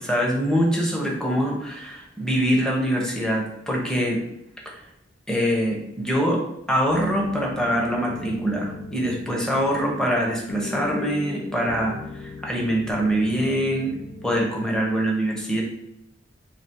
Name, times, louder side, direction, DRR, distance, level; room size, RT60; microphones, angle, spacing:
voice 1, 0.0-4.2 4.6-4.7 5.3-6.4 6.7-13.9 14.2-15.6, equal, 5° left, -2 dB, 0.8 m, -24 dB
sound 1, 6.9-14.9, left 2 dB, 60° left, 0.5 m, -38 dB
3.2 x 2.9 x 4.4 m, 0.78 s
head